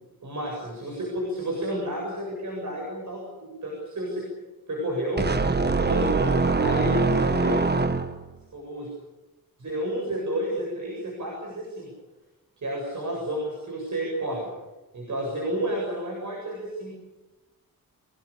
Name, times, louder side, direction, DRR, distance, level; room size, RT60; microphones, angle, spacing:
voice 1, 0.2-4.2 4.7-5.2 5.7-6.3 6.6-7.6 8.5-8.9 9.6-11.9 12.6-14.5 14.9-16.9, right 1 dB, 55° right, -2 dB, 7.9 m, -31 dB
sound 1, 5.2-8.4, right 4 dB, 30° right, 1.4 m, -23 dB
26.0 x 19.5 x 8.6 m, 1.1 s
wide cardioid pair, 120°, 35 cm